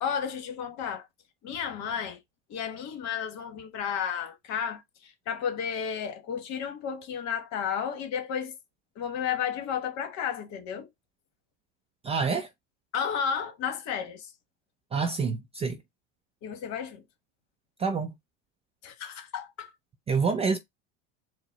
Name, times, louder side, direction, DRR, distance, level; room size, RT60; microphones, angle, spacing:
voice 1, 0.0-1.1 1.4-2.2 2.5-8.5 9.0-10.9 12.9-14.3 16.4-17.0 18.8-19.7, left 7 dB, 50° left, 1.2 m, -32 dB
voice 2, 12.0-12.5 14.9-15.8 17.8-18.1 20.1-20.6, right 5 dB, 20° right, 0.4 m, -27 dB
4.6 x 2.1 x 3.9 m
supercardioid pair, 115°, 35 cm